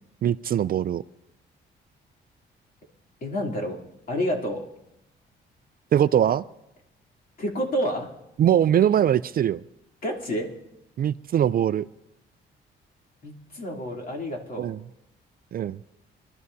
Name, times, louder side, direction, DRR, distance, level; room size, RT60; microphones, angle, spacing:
voice 1, 0.2-1.0 5.9-6.4 8.4-9.6 11.0-11.9 14.6-14.8 15.5-15.8, right 10 dB, 50° right, 16 dB, 0.4 m, -21 dB
voice 2, 3.2-3.8 4.1-4.6 7.4-8.1 10.0-10.5 13.2-14.7, equal, 45° left, -1 dB, 3.1 m, -29 dB
25.5 x 12.5 x 2.8 m, 0.87 s
cardioid pair, 90°, 20 cm